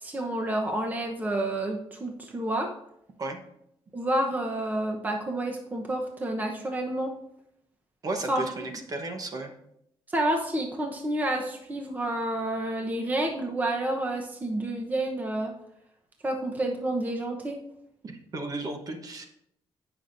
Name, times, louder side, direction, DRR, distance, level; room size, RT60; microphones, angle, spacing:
voice 1, 0.0-2.7 3.9-7.1 8.3-8.4 10.1-15.5 16.2-17.6, right 1 dB, 15° right, 1 dB, 0.9 m, -29 dB
voice 2, 8.0-9.5 18.0-19.3, right 2 dB, 40° right, 5 dB, 1.1 m, -34 dB
17.0 x 6.1 x 2.7 m, 0.77 s
cardioid pair, 135°, 10 cm